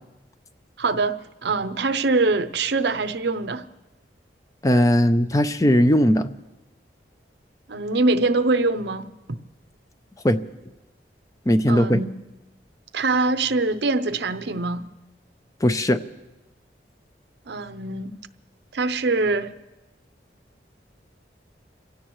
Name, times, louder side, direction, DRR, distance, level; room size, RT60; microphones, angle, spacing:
voice 1, 0.8-3.7 7.7-9.1 11.7-12.1 12.9-14.9 17.5-18.1 18.7-19.5, right 3 dB, 70° right, 0.7 m, -23 dB
voice 2, 4.6-6.3 10.2-10.4 11.5-12.0 15.6-16.0, equal, 20° left, 0.5 m, -18 dB
28.0 x 16.5 x 3.1 m
head